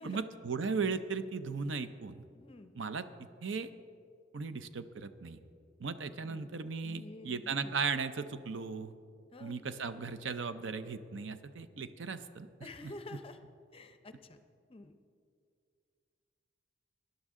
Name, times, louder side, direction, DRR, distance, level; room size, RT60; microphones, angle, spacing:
voice 1, 0.0-2.2 2.8-3.1 3.4-3.7 4.3-5.4 5.8-8.9 9.4-12.5 12.8-12.9, right 5 dB, 80° right, 11 dB, 0.6 m, -37 dB
voice 2, 2.3-2.7 6.3-6.5 6.8-7.7 9.3-9.6 12.6-13.4 13.7-14.4 14.7-14.9, left 2 dB, 30° left, 9 dB, 0.6 m, -49 dB
18.5 x 11.0 x 3.7 m, 2.3 s
head